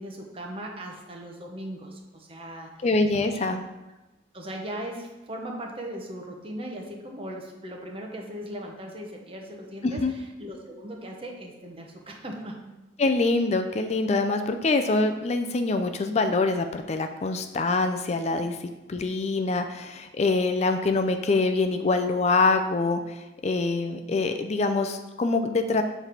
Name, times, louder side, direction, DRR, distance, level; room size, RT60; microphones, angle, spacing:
voice 1, 0.0-2.9 3.3-3.5 4.3-12.6, right 1 dB, 30° right, 1 dB, 0.9 m, -38 dB
voice 2, 2.8-3.6 9.8-10.1 13.0-25.8, left 3 dB, 35° left, 6 dB, 0.4 m, -25 dB
7.3 x 3.3 x 5.7 m, 1.0 s
head